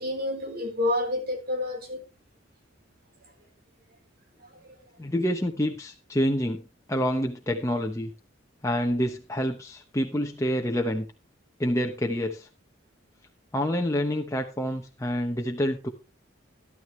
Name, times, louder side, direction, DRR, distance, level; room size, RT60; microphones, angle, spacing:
voice 1, 0.0-2.0 4.6-4.7, left 1 dB, 50° right, 4.3 m, -29 dB
voice 2, 5.0-6.6 6.9-8.1 8.6-11.1 11.6-12.5 13.5-15.9, equal, 15° left, 0.9 m, -27 dB
13.0 x 12.5 x 3.3 m
head